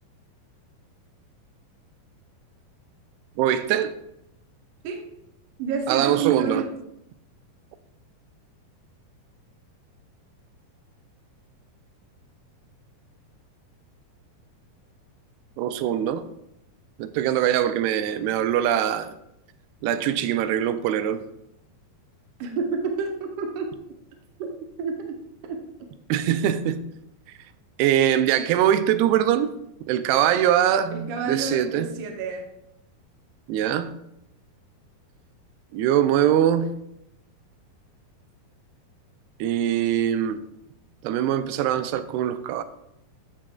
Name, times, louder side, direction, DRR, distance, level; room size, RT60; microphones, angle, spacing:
voice 1, 3.4-3.9 5.9-6.6 15.6-16.2 17.0-19.1 19.8-21.2 26.1-26.8 27.8-29.5 29.9-31.9 33.5-33.9 35.7-36.7 39.4-40.4 41.0-42.6, right 10 dB, 90° right, 2.6 m, -22 dB
voice 2, 5.6-6.7 22.4-23.7 24.4-24.5 24.8-25.2 25.4-25.6 26.1-26.4 30.9-32.5, right 5 dB, 75° right, 2.0 m, -29 dB
14.5 x 6.0 x 2.3 m
omnidirectional pair, 4.5 m